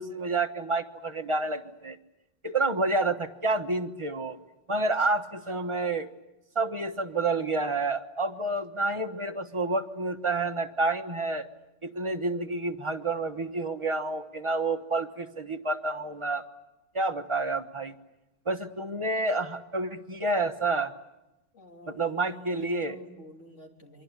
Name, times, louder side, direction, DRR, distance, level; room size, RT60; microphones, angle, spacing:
voice 1, 0.0-2.0 2.4-4.4 4.7-6.1 6.5-11.5 11.8-16.4 16.9-17.9 18.4-20.9 21.9-23.0, right 2 dB, 25° right, 7 dB, 1.3 m, -29 dB
voice 2, 21.5-24.0, right 1 dB, 75° left, 2 dB, 3.5 m, -48 dB
28.5 x 24.0 x 8.4 m, 0.94 s
omnidirectional pair, 1.3 m